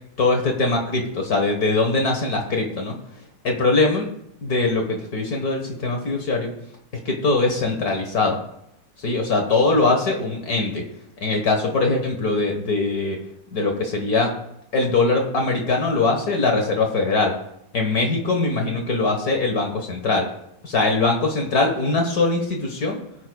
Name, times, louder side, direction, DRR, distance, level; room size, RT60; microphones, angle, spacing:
voice 1, 0.2-2.9 3.4-4.1 4.4-6.5 7.0-8.4 9.0-10.8 11.2-13.2 13.5-14.3 14.7-17.3 17.7-20.2 20.6-23.0, left 3 dB, 60° left, 2 dB, 1.8 m, -21 dB
21.0 x 8.2 x 2.3 m, 0.78 s
omnidirectional pair, 1.9 m